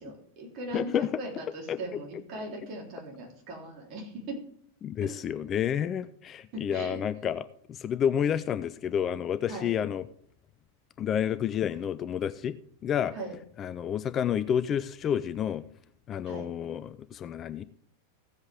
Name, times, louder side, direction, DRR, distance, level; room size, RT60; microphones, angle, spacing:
voice 1, 0.0-4.4 6.5-7.0 9.5-9.8 13.1-13.3 16.2-16.5, right 2 dB, 40° right, 0 dB, 3.5 m, -39 dB
voice 2, 0.7-1.1 1.7-2.0 4.8-7.5 7.8-10.1 11.0-12.5 12.8-13.1 13.6-15.6 16.1-17.6, left 9 dB, 30° left, 14 dB, 0.4 m, -29 dB
15.5 x 8.0 x 3.5 m, 0.64 s
figure-of-eight pair, 90°, 0 cm